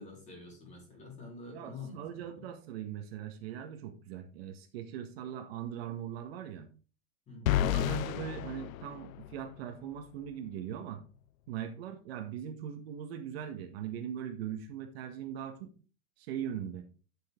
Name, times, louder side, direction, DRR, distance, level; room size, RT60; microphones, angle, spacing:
voice 1, 0.0-2.5 7.3-7.6, left 3 dB, 15° left, 0 dB, 3.8 m, -47 dB
voice 2, 1.5-6.7 7.5-11.0 11.5-15.7 16.2-16.8, right 9 dB, 45° right, 4 dB, 1.6 m, -40 dB
sound 1, 7.5-9.6, left 12 dB, 75° left, 0.6 m, -31 dB
9.3 x 7.7 x 3.8 m, 0.37 s
supercardioid pair, 170°, 41 cm